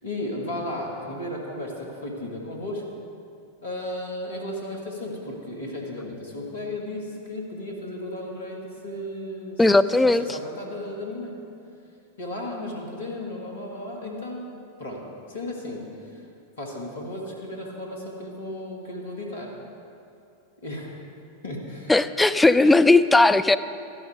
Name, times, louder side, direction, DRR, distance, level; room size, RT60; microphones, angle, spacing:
voice 1, 0.0-2.8 3.6-11.4 12.2-14.5 14.8-16.2 16.6-19.5 20.6-21.0 21.4-21.9 22.6-22.8, left 1 dB, 65° left, -1 dB, 1.9 m, -34 dB
voice 2, 9.6-10.2 21.9-23.6, left 2 dB, 5° left, 12 dB, 0.3 m, -17 dB
12.5 x 10.5 x 3.7 m, 2.6 s
figure-of-eight pair, 90°, 0 cm